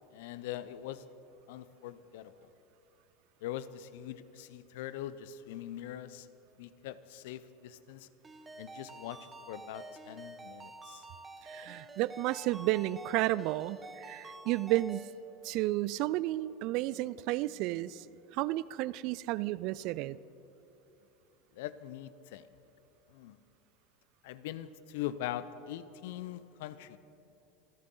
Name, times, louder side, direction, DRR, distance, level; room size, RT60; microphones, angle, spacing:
voice 1, 0.1-1.1 1.5-2.3 3.4-6.3 6.6-8.1 8.6-11.1 21.5-22.5 23.1-23.4 24.2-27.0, left 12 dB, 65° left, 15 dB, 0.7 m, -42 dB
Ringtone, 8.2-15.1, right 2 dB, 20° right, 1.6 m, -49 dB
voice 2, 11.4-15.1 15.4-18.1 18.3-20.2, right 16 dB, 55° right, 19 dB, 0.4 m, -32 dB
27.0 x 13.5 x 3.9 m, 2.9 s
hypercardioid pair, 80°, 0 cm